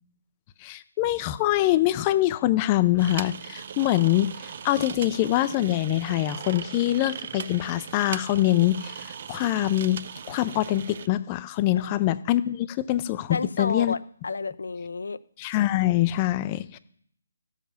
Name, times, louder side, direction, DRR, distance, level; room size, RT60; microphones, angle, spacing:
voice 1, 0.6-10.0 10.3-13.9 15.4-16.8, left 14 dB, 25° left, 0.5 m, -24 dB
sound 1, 3.0-11.1, right 7 dB, 45° right, 0.6 m, -39 dB
voice 2, 13.3-15.2, left 4 dB, 75° left, 0.6 m, -31 dB
14.0 x 7.3 x 5.6 m
figure-of-eight pair, 150°, 0 cm